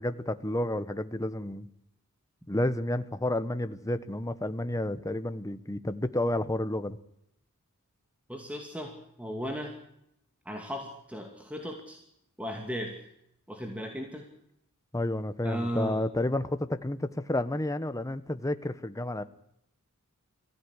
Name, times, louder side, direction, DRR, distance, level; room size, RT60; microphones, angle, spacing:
voice 1, 0.0-1.7 2.5-7.0 14.9-19.2, left 1 dB, 15° left, 11 dB, 1.1 m, -30 dB
voice 2, 8.3-9.8 10.5-12.0 12.4-12.9 13.5-14.3 15.4-16.0, equal, 5° right, 2 dB, 2.5 m, -36 dB
23.0 x 15.5 x 9.9 m, 0.79 s
head